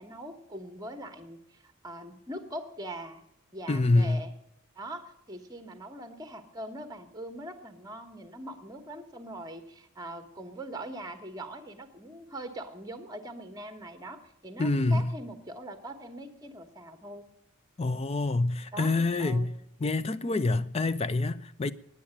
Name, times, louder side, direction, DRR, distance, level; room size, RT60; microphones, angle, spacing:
voice 1, 0.0-3.2 3.5-4.3 4.8-17.2 18.7-19.5, right 1 dB, 15° right, 1.1 m, -42 dB
voice 2, 3.7-4.2 14.6-15.1 17.8-19.5 19.8-21.7, left 2 dB, 30° left, 0.4 m, -26 dB
9.7 x 8.7 x 10.0 m
head